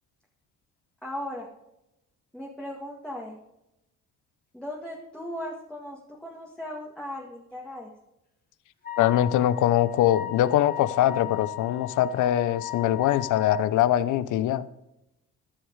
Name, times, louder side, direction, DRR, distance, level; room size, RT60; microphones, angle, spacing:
voice 1, 1.0-1.5 2.3-3.4 4.5-7.9, left 1 dB, 5° left, -2 dB, 1.8 m, -37 dB
Wind instrument woodwind instrument, 8.8-13.7, left 14 dB, 30° left, 2.2 m, -37 dB
voice 2, 9.0-14.7, left 12 dB, 80° left, 16 dB, 0.7 m, -23 dB
13.0 x 6.4 x 4.7 m, 0.88 s
cardioid pair, 90°, 30 cm